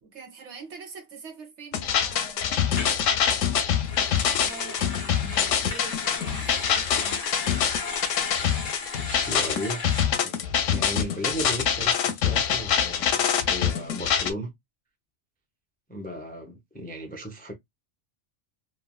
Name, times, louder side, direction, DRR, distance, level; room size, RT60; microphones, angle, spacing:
voice 1, 0.0-7.2, right 5 dB, 70° right, 1.2 m, -45 dB
sound 1, 1.7-14.3, left 8 dB, 85° left, 1.0 m, -25 dB
sound 2, 2.8-3.0 3.7-10.0, left 4 dB, 35° left, 0.9 m, -36 dB
voice 2, 8.9-14.5 15.9-17.5, equal, 10° left, 0.4 m, -36 dB
3.0 x 2.5 x 2.2 m
omnidirectional pair, 1.3 m